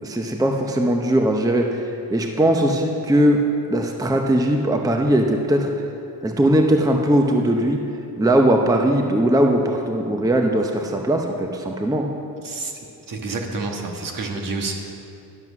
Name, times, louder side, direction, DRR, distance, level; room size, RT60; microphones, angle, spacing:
voice 1, 0.0-3.4 3.7-5.9 6.2-7.8 8.2-12.1, right 1 dB, 10° right, 3 dB, 0.7 m, -19 dB
voice 2, 13.1-14.7, right 3 dB, 55° right, 2 dB, 1.6 m, -28 dB
11.0 x 7.7 x 6.1 m, 2.7 s
cardioid pair, 105°, 39 cm